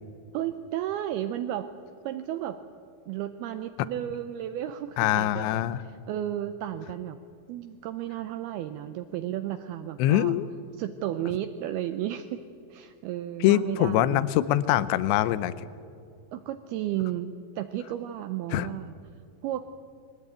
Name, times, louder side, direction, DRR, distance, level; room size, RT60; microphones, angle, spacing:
voice 1, 0.3-1.7 2.0-2.6 3.1-5.6 6.1-7.2 7.5-10.3 10.8-12.4 12.7-14.3 16.3-18.9 19.4-19.7, right 12 dB, 80° right, 9 dB, 2.4 m, -33 dB
voice 2, 5.0-5.8 10.0-10.5 13.4-15.5 18.5-18.7, left 14 dB, 85° left, 16 dB, 2.9 m, -23 dB
22.0 x 18.0 x 8.9 m, 2.4 s
omnidirectional pair, 5.0 m